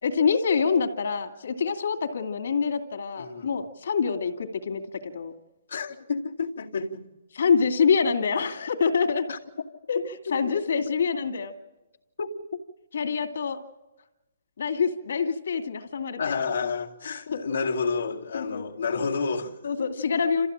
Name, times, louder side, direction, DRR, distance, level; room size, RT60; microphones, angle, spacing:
voice 1, 0.0-5.3 7.3-9.3 9.9-10.0 10.3-11.5 12.9-13.6 14.6-16.4 17.3-17.4 18.3-18.6 19.6-20.5, left 5 dB, 65° left, 2.5 m, -26 dB
voice 2, 3.2-3.5 5.7-7.0 9.3-9.4 9.7-9.8 10.3-10.4 12.2-12.4 16.2-19.6, left 5 dB, 90° left, 2.3 m, -30 dB
28.5 x 14.5 x 8.8 m
hypercardioid pair, 175°, 0 cm